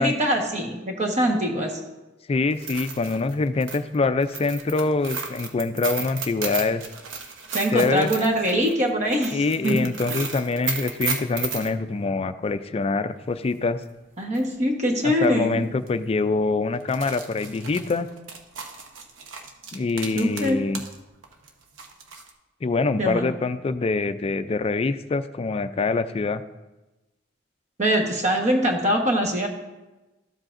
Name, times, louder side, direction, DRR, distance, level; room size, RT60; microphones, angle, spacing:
voice 1, 0.0-1.8 7.5-9.8 10.1-10.2 14.2-15.6 20.1-20.6 23.0-23.3 27.8-29.5, equal, 40° right, 2 dB, 1.3 m, -23 dB
voice 2, 2.3-6.8 7.7-8.1 9.3-13.8 15.0-18.1 19.7-20.8 22.6-26.4, left 3 dB, 30° left, 12 dB, 0.4 m, -25 dB
sound 1, 2.5-11.7 13.9-14.0 14.3-14.4 15.2-15.4 15.8-15.9 16.8-21.0 21.2-22.3, right 5 dB, 90° right, 0.9 m, -34 dB
13.0 x 7.4 x 2.6 m, 1.1 s
head